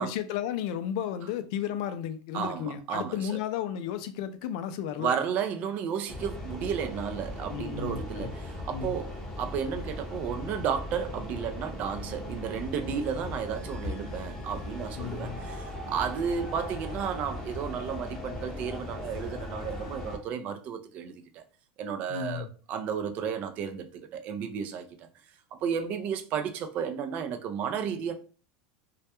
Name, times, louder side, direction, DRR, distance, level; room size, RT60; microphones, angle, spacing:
voice 1, 0.0-5.1 7.5-8.3 8.7-8.9 15.0-15.4 22.1-22.5, left 9 dB, 65° left, 0.4 m, -33 dB
voice 2, 2.3-3.4 5.0-21.4 21.8-25.1 25.5-28.1, right 7 dB, 40° right, 0.3 m, -33 dB
sound 1, 6.1-20.2, left 1 dB, 15° left, 0.7 m, -38 dB
2.2 x 2.1 x 2.8 m
supercardioid pair, 145°, 4 cm